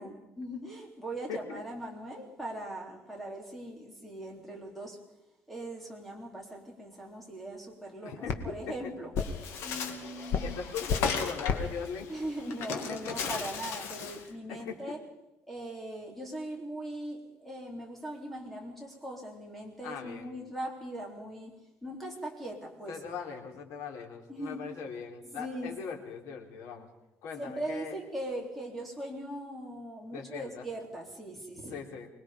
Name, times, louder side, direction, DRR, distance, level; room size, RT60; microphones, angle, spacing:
voice 1, 0.0-5.0 5.5-9.1 9.6-10.6 12.1-15.0 15.5-23.0 24.3-24.7 25.2-25.7 27.4-31.8, right 1 dB, 5° left, 0 dB, 3.7 m, -40 dB
voice 2, 1.3-1.6 8.0-8.7 10.4-12.1 12.7-13.2 14.3-14.9 19.8-20.3 22.9-26.9 27.2-27.9 30.1-30.6 31.7-32.1, left 6 dB, 85° left, 2 dB, 3.6 m, -40 dB
sound 1, 7.3-13.7, left 5 dB, 45° left, 2.0 m, -37 dB
Bird, 9.2-14.3, left 6 dB, 70° left, 2.7 m, -37 dB
25.0 x 20.5 x 5.1 m, 0.92 s
cardioid pair, 175°, 5 cm